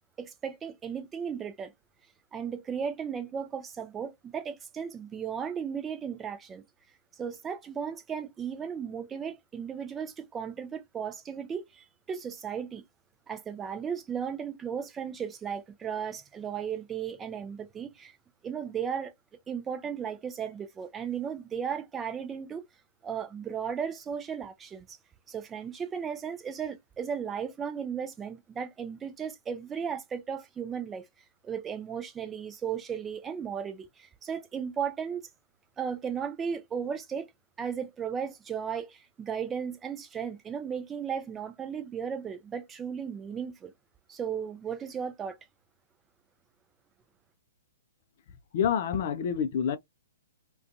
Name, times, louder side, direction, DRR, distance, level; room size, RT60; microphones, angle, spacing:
voice 1, 0.2-1.7 2.3-6.6 7.2-12.8 13.3-18.1 18.4-19.1 19.5-22.7 23.0-25.0 25.3-31.1 31.4-35.3 35.8-37.3 37.6-43.7 44.1-45.4, right 7 dB, 15° right, 0.5 m, -35 dB
voice 2, 48.5-49.8, left 8 dB, 50° left, 0.4 m, -27 dB
2.4 x 2.3 x 2.5 m
figure-of-eight pair, 120°, 0 cm